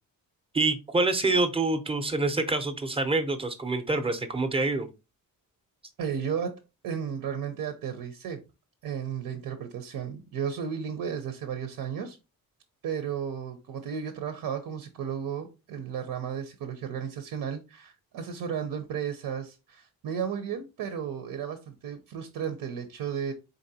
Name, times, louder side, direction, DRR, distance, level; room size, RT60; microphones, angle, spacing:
voice 1, 0.5-4.9, right 3 dB, 15° right, 0.6 m, -26 dB
voice 2, 6.0-8.4 8.8-12.2 12.8-23.3, right 7 dB, 80° right, 0.8 m, -34 dB
4.1 x 3.8 x 2.7 m
cardioid pair, 135°, 36 cm